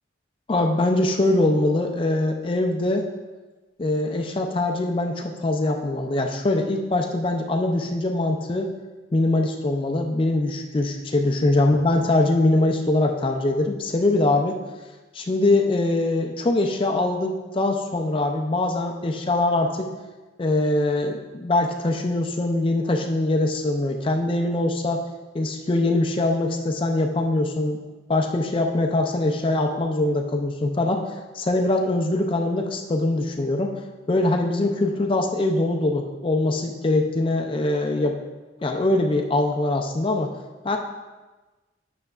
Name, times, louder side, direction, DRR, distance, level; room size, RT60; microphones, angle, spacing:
voice 1, 0.5-3.0 3.8-8.7 9.1-14.6 15.1-19.9 20.4-25.0 25.3-27.8 28.1-31.0 31.3-33.7 34.1-38.2 38.6-40.3 40.6-40.8, left 2 dB, 25° left, 3 dB, 0.4 m, -22 dB
8.9 x 6.5 x 2.4 m, 1.2 s
head